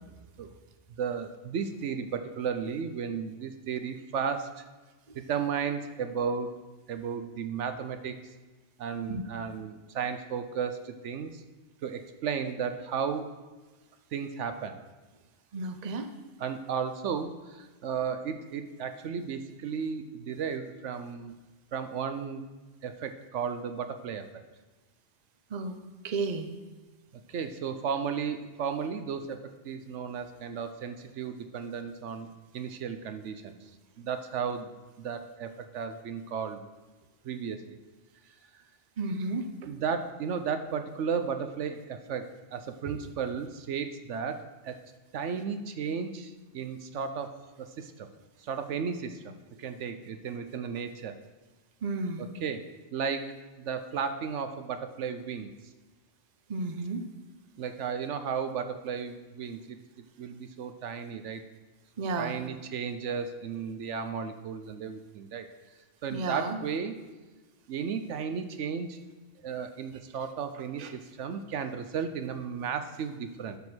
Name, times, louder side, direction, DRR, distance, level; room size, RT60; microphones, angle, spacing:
voice 1, 1.0-4.6 5.1-6.5 6.9-8.2 8.8-11.4 11.8-13.3 14.1-14.8 16.4-21.3 21.7-22.4 22.8-24.3 27.3-32.3 32.5-33.7 34.0-34.7 35.0-36.6 37.2-37.8 38.5-38.6 39.7-44.8 45.1-48.1 48.4-51.2 52.4-52.6 52.9-55.5 57.6-59.8 60.2-61.4 62.2-65.5 66.0-67.0 67.7-69.0 69.4-73.6, right 6 dB, 75° right, 8 dB, 1.0 m, -34 dB
voice 2, 15.5-16.1 25.5-25.8 26.0-26.5 39.0-39.5 42.8-43.0 51.8-52.2 56.5-57.0 62.0-62.4 66.1-66.6 70.8-70.9, right 3 dB, 40° right, 7 dB, 0.8 m, -32 dB
12.0 x 5.1 x 6.2 m, 1.2 s
omnidirectional pair, 1.2 m